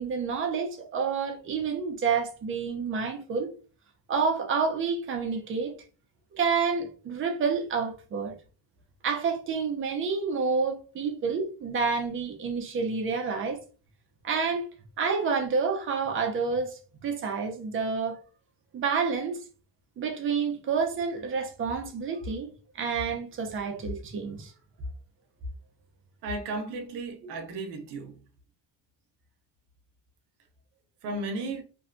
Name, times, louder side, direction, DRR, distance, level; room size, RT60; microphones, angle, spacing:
voice 1, 0.0-3.5 4.1-5.7 6.3-8.3 9.0-13.6 14.2-14.7 15.0-18.2 18.7-19.4 20.0-22.5 22.7-24.5, right 5 dB, 30° right, 0.4 m, -29 dB
voice 2, 26.2-28.2 31.0-31.6, right 2 dB, 70° right, 0.6 m, -34 dB
2.6 x 2.1 x 2.4 m
cardioid pair, 180°, 42 cm